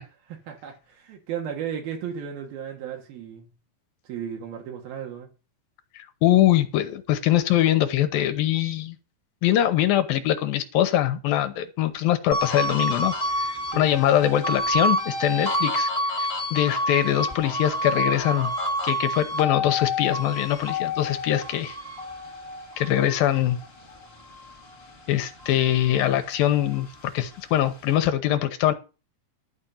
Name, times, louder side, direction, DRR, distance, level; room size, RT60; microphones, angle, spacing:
voice 1, 0.5-3.5 4.0-5.3 13.7-13.9, right 8 dB, 80° right, 3.4 m, -34 dB
voice 2, 6.0-9.0 9.4-13.2 13.8-15.9 16.2-18.5 18.8-21.8 22.8-23.6 25.1-26.9 27.1-28.7, left 12 dB, 80° left, 2.7 m, -23 dB
sound 1, 12.3-24.9 25.3-27.0, left 1 dB, 25° left, 1.3 m, -29 dB
12.0 x 5.2 x 7.1 m
omnidirectional pair, 4.2 m